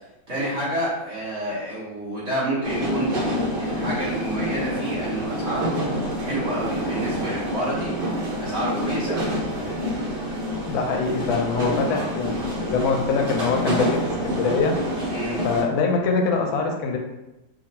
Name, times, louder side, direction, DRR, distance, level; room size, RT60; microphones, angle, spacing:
voice 1, 0.3-7.9 8.4-9.3 11.8-12.1 15.1-15.4, right 1 dB, 45° right, -7 dB, 0.9 m, -29 dB
sound 1, 2.6-15.6, equal, 80° right, 0.5 m, -27 dB
voice 2, 10.7-14.0 14.2-14.7 15.4-17.0, left 5 dB, 90° left, 2 dB, 1.3 m, -23 dB
2.9 x 2.5 x 4.1 m, 0.96 s
omnidirectional pair, 2.0 m